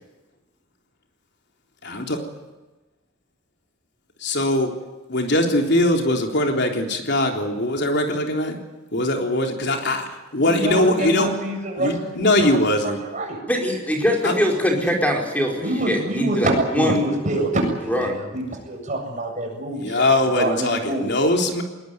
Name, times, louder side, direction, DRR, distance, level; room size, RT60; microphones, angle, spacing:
voice 1, 1.8-2.2 4.2-4.7 5.1-8.6 8.9-11.4 11.8-13.0 14.2-14.3 14.8-14.9 19.8-21.6, left 1 dB, 55° left, 3 dB, 3.7 m, -21 dB
voice 2, 10.5-12.6 13.1-13.4 15.6-21.1, right 2 dB, 40° right, 1 dB, 7.7 m, -26 dB
voice 3, 13.5-17.0 17.8-18.2, equal, 10° left, 0 dB, 4.8 m, -22 dB
21.0 x 20.5 x 9.7 m, 1.1 s
head